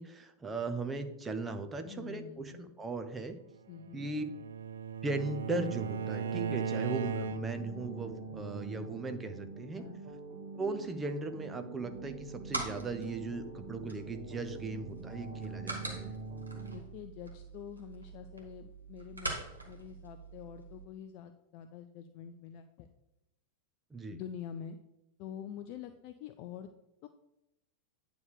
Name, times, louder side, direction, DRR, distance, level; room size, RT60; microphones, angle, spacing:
voice 1, 0.0-3.4 3.9-4.3 5.0-9.8 10.6-16.1 23.9-24.2, right 3 dB, 15° right, 7 dB, 0.9 m, -38 dB
voice 2, 1.8-2.7 3.7-4.1 9.8-10.0 16.7-19.3 19.6-22.9 24.1-24.8 25.2-26.7 27.0-27.1, left 8 dB, 45° left, 8 dB, 0.5 m, -46 dB
Bowed string instrument, 3.8-7.7, right 6 dB, 65° right, 0.3 m, -37 dB
sound 1, 5.1-16.8, right 4 dB, 35° right, 1.5 m, -45 dB
sound 2, 11.9-20.8, right 2 dB, 80° right, 1.6 m, -44 dB
9.5 x 3.4 x 6.6 m, 0.88 s
figure-of-eight pair, 90°, 0 cm